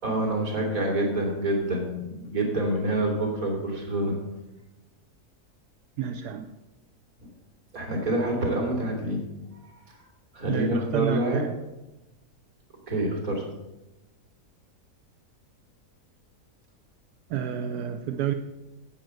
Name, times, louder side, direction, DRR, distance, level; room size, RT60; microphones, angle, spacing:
voice 1, 0.0-4.2 7.7-9.2 9.9-10.0 10.3-11.5 12.9-13.4, right 1 dB, 60° right, 0 dB, 3.5 m, -27 dB
voice 2, 6.0-6.5 10.5-11.6 17.3-18.3, right 9 dB, 80° right, 7 dB, 1.3 m, -30 dB
10.5 x 8.7 x 7.7 m, 1.0 s
omnidirectional pair, 1.7 m